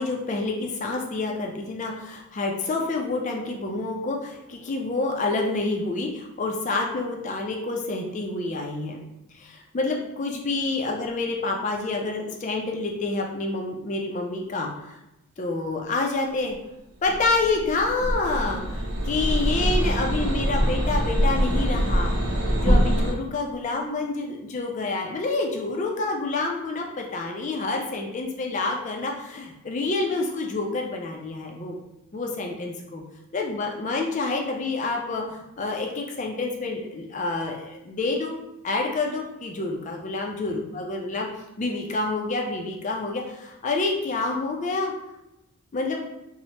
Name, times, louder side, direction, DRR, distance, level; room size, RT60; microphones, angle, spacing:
voice 1, 0.0-9.0 9.3-15.0 15.4-16.6 17.0-22.1 22.6-31.8 32.1-33.0 33.3-38.3 38.6-41.3 41.6-44.9 45.7-46.0, left 3 dB, 35° left, 1 dB, 0.3 m, -28 dB
sound 1, 17.0-23.1, equal, 70° right, 0.8 m, -24 dB
3.1 x 2.0 x 2.7 m, 0.91 s
head